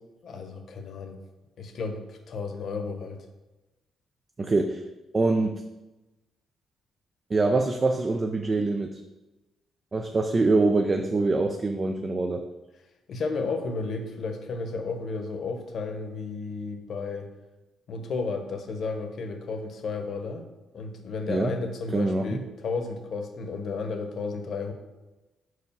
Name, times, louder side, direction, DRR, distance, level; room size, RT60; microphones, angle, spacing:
voice 1, 0.2-1.2 1.6-3.3 13.1-17.3 17.9-20.4 20.7-24.7, left 4 dB, 60° left, 6 dB, 0.9 m, -33 dB
voice 2, 4.4-4.8 5.1-5.6 7.3-9.0 9.9-12.4 21.3-21.5 21.9-22.4, right 3 dB, 30° right, 5 dB, 0.4 m, -24 dB
4.8 x 4.7 x 5.4 m, 1.1 s
cardioid pair, 90°, 0 cm